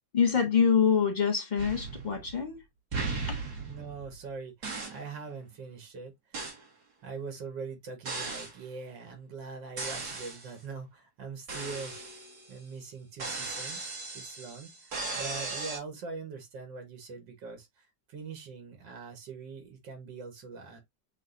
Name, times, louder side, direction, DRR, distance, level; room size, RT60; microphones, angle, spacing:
voice 1, 0.1-2.6, left 6 dB, 35° left, 0.7 m, -25 dB
sound 1, 1.6-2.5 2.9-4.2 4.6-5.1 6.3-6.6 8.0-8.6 9.8-10.5 11.5-12.6 13.2-15.8, right 3 dB, 60° right, 2.1 m, -37 dB
voice 2, 3.7-6.6 7.0-12.0 12.5-20.8, right 4 dB, 85° right, 2.0 m, -43 dB
7.1 x 2.4 x 2.5 m
omnidirectional pair, 1.9 m